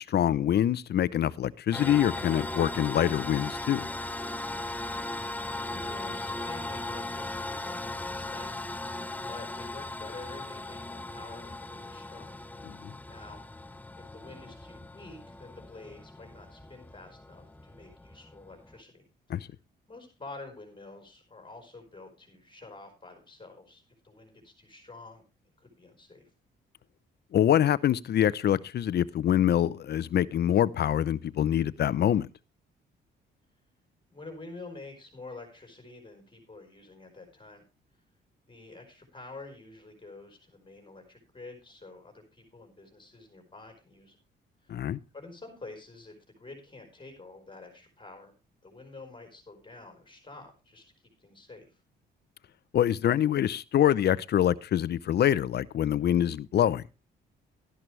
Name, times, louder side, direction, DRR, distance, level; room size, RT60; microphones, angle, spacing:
voice 1, 0.0-3.9 12.8-12.9 19.3-19.4 27.3-32.3 44.7-45.0 52.7-56.8, left 10 dB, 55° left, 0.6 m, -25 dB
sound 1, 1.7-18.8, left 2 dB, 10° left, 0.8 m, -38 dB
voice 2, 5.7-8.5 9.2-12.4 13.1-13.7 14.0-19.5 19.9-25.2 25.6-26.3 34.1-37.6 38.5-44.2 44.6-44.8 45.1-48.3 48.6-50.8 51.2-51.8, left 3 dB, 25° left, 4.4 m, -48 dB
12.5 x 11.0 x 3.3 m
cardioid pair, 90°, 20 cm